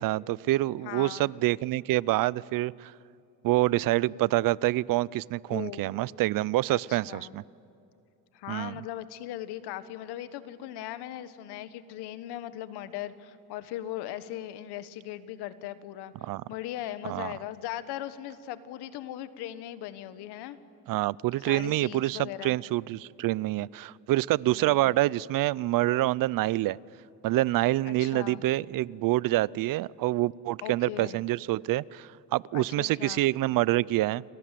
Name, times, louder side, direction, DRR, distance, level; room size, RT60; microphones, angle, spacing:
voice 1, 0.0-2.9 3.4-7.4 8.5-8.8 16.2-16.4 17.0-17.3 20.9-26.8 27.2-34.2, right 16 dB, 60° right, 23 dB, 0.5 m, -27 dB
voice 2, 0.8-1.3 5.5-5.9 6.7-7.4 8.3-16.1 16.5-20.6 21.5-22.6 24.5-24.9 27.8-28.4 30.6-31.2 32.5-33.2, left 13 dB, 80° left, 13 dB, 1.5 m, -39 dB
29.5 x 24.5 x 7.6 m, 2.7 s
cardioid pair, 130°, 39 cm